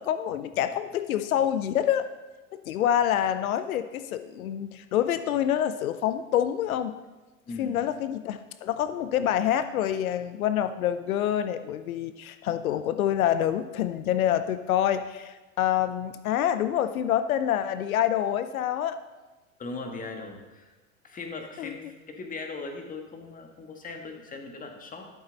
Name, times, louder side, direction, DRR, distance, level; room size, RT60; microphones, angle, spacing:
voice 1, 0.0-2.1 2.7-6.9 7.6-19.0 21.6-21.7, left 10 dB, 90° left, 12 dB, 0.7 m, -27 dB
voice 2, 7.5-7.8 19.6-20.8 21.0-25.1, left 3 dB, 20° left, 4 dB, 1.5 m, -39 dB
12.5 x 7.3 x 4.0 m, 1.2 s
hypercardioid pair, 115°, 41 cm